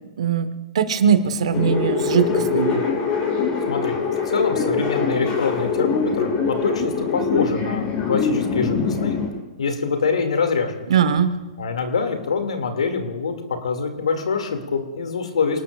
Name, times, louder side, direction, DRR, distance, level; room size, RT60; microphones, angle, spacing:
voice 1, 0.2-0.5 0.7-2.8 10.9-11.4, right 7 dB, 65° right, 11 dB, 1.4 m, -20 dB
sound 1, 1.5-9.3, left 5 dB, 35° left, 5.4 m, -23 dB
voice 2, 4.3-9.2 9.6-10.9 11.6-13.3 13.6-15.6, left 5 dB, 75° left, 5 dB, 2.5 m, -24 dB
28.0 x 18.5 x 2.5 m, 1.2 s
hypercardioid pair, 120°, 4 cm